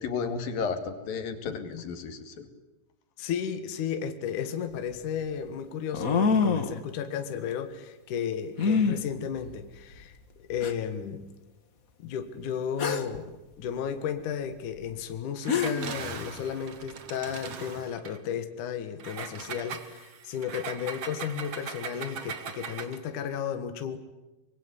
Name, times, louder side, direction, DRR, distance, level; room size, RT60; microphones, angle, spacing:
voice 1, 0.0-2.5, left 5 dB, 90° left, 8 dB, 4.1 m, -33 dB
voice 2, 3.2-11.3 12.0-13.3 13.6-24.0, left 8 dB, 65° left, 8 dB, 3.0 m, -34 dB
sound 1, 4.4-4.5 5.9-6.8 8.6-9.0 10.0-10.1 10.6-10.7 12.8-13.2 15.1-15.2 15.5-15.9, left 5 dB, 40° left, 1.2 m, -25 dB
Engine, 15.4-18.2 19.0-23.1, right 6 dB, 50° right, 2.5 m, -40 dB
25.0 x 23.0 x 9.8 m, 1.0 s
omnidirectional pair, 3.9 m